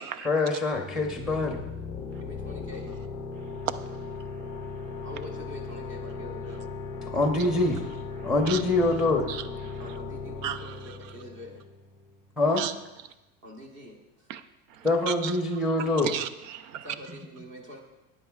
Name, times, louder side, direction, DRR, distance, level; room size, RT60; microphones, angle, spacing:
voice 1, 0.2-1.6 7.1-7.8 8.2-9.3 12.4-12.6 14.8-16.1, left 2 dB, ahead, 0.8 m, -24 dB
sound 1, 0.7-12.1, left 4 dB, 15° left, 0.4 m, -38 dB
voice 2, 2.0-2.9 5.0-6.7 8.7-8.8 9.8-11.6 13.4-14.3 16.8-17.8, left 1 dB, 30° right, 1.2 m, -45 dB
voice 3, 8.2-8.6 9.3-9.8 10.4-11.0 12.4-12.7 14.3-14.4 14.7-15.4 15.8-16.9, right 10 dB, 75° right, 0.7 m, -35 dB
14.0 x 9.6 x 2.4 m
supercardioid pair, 170°, 39 cm